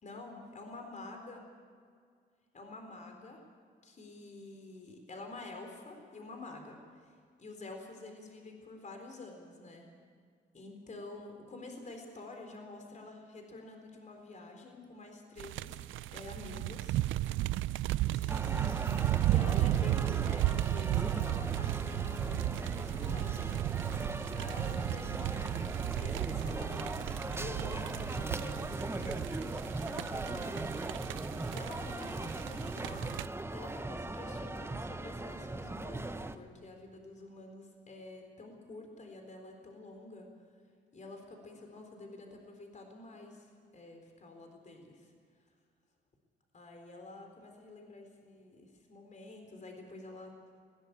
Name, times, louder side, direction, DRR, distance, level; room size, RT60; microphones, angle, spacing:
voice 1, 0.0-1.4 2.5-3.4 3.8-7.1 7.4-9.9 10.5-17.0 17.3-17.6 18.1-23.5 24.4-25.5 26.0-27.0 27.4-30.7 31.4-33.1 33.5-40.3 40.9-45.1 46.5-50.4, left 2 dB, 40° left, 4 dB, 4.1 m, -48 dB
sound 1, 15.4-33.3, right 15 dB, 80° right, 0.5 m, -34 dB
sound 2, 18.3-36.4, right 2 dB, 10° right, 0.9 m, -39 dB
20.0 x 17.5 x 8.3 m, 2.1 s
cardioid pair, 90°, 20 cm